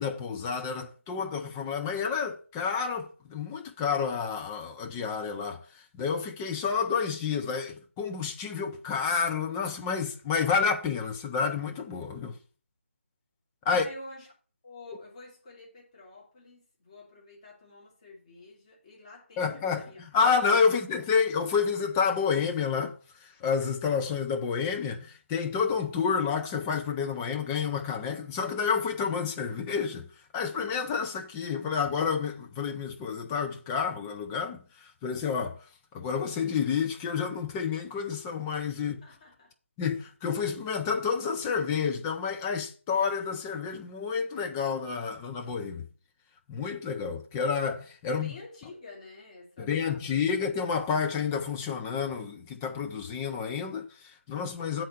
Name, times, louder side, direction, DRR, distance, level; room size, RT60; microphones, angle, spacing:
voice 1, 0.0-12.4 13.6-13.8 19.4-19.8 20.1-30.1 30.3-35.6 35.9-39.0 39.8-45.9 46.5-48.3 49.6-54.8, left 6 dB, 10° left, 0.5 m, -29 dB
voice 2, 13.7-14.3 14.6-20.0 20.4-20.8 39.0-39.5 48.1-50.3, left 2 dB, 30° left, 2.9 m, -48 dB
7.7 x 4.5 x 6.4 m
figure-of-eight pair, 160°, 7 cm